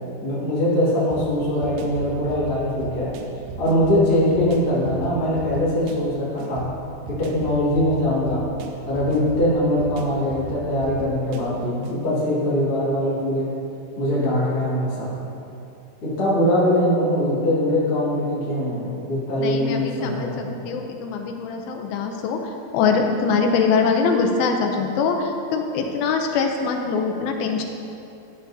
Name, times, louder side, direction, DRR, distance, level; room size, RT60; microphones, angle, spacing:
voice 1, 0.0-3.2 3.6-6.7 7.1-8.5 8.9-13.5 14.0-15.1 16.0-20.6, left 1 dB, 40° left, -9 dB, 2.4 m, -22 dB
sound 1, 1.1-12.0, right 3 dB, 90° right, 1.9 m, -38 dB
voice 2, 19.4-22.4 22.7-27.6, left 5 dB, 80° left, 3 dB, 2.3 m, -23 dB
13.5 x 7.8 x 2.7 m, 2.7 s
omnidirectional pair, 4.7 m